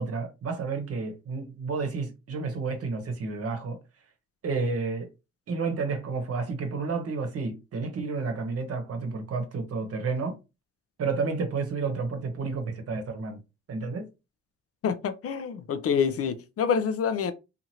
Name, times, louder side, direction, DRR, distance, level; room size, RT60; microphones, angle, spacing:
voice 1, 0.0-3.8 4.4-5.1 5.5-10.4 11.0-13.4 13.7-14.1, right 4 dB, 50° right, 0.9 m, -31 dB
voice 2, 14.8-17.3, left 7 dB, 50° left, 0.5 m, -27 dB
2.8 x 2.5 x 2.8 m
cardioid pair, 90°, 30 cm